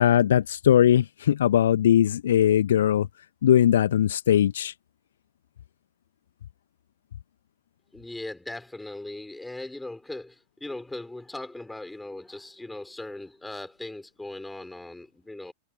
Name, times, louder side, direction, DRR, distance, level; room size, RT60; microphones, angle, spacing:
voice 1, 0.0-3.1 3.4-4.7, left 10 dB, 60° left, 1.4 m, -20 dB
voice 2, 7.9-15.5, left 2 dB, 5° left, 6.0 m, -39 dB
figure-of-eight pair, 90°, 0 cm